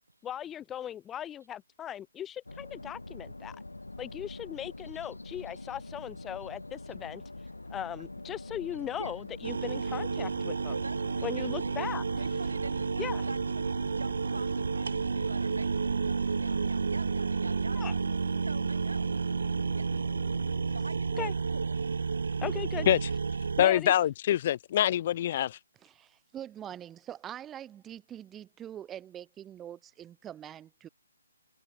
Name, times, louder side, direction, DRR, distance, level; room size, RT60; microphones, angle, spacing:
voice 1, 0.2-3.6 4.0-10.7 11.2-12.3 13.0-13.3 17.7-17.9 21.2-21.3 22.4-22.9 23.6-23.9, left 10 dB, 10° left, 1.2 m, -38 dB
sound 1, 2.5-20.9, left 2 dB, 80° left, 2.2 m, -44 dB
sound 2, 9.4-23.7, right 5 dB, 60° right, 0.7 m, -31 dB
voice 2, 10.7-11.8 12.1-17.8 18.4-19.2 19.7-20.2 20.7-22.0, right 2 dB, 75° right, 6.2 m, -45 dB
voice 3, 23.6-25.6, left 11 dB, 35° left, 1.4 m, -25 dB
voice 4, 25.8-30.9, right 10 dB, 10° right, 6.3 m, -44 dB
figure-of-eight pair, 140°, 0 cm